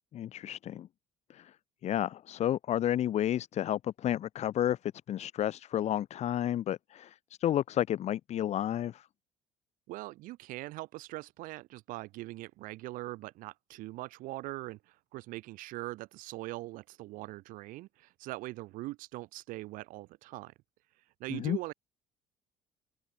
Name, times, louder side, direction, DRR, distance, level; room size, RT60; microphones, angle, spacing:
voice 1, 0.1-0.9 1.3-1.5 1.8-9.1 21.3-21.6, left 11 dB, 45° left, 0.7 m, -31 dB
voice 2, 9.9-20.5 21.2-21.7, right 19 dB, 55° right, 0.9 m, -42 dB
open air
figure-of-eight pair, 55°, 16 cm